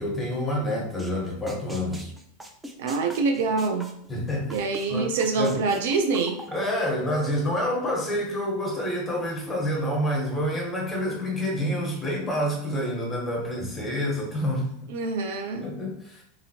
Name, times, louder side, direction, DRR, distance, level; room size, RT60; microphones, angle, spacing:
voice 1, 0.0-2.1 4.1-4.5 4.9-5.1 5.4-5.6 6.5-14.7 15.6-16.2, equal, 15° left, -1 dB, 1.2 m, -28 dB
sound 1, 1.0-1.1 1.5-4.9 5.2-7.5, right 1 dB, 10° right, 0.5 m, -40 dB
voice 2, 2.8-3.9 4.5-6.4 14.9-15.7, right 4 dB, 75° right, 4 dB, 0.4 m, -25 dB
2.8 x 2.6 x 2.8 m, 0.70 s
hypercardioid pair, 110°, 0 cm